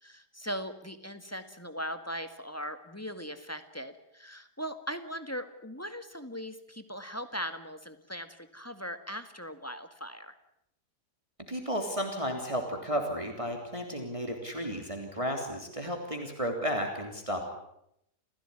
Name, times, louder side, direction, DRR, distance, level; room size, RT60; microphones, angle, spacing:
voice 1, 0.0-10.4, equal, 10° left, 9 dB, 1.8 m, -39 dB
voice 2, 11.5-17.4, equal, 20° right, 3 dB, 3.3 m, -33 dB
29.5 x 16.5 x 9.8 m, 0.78 s
omnidirectional pair, 1.7 m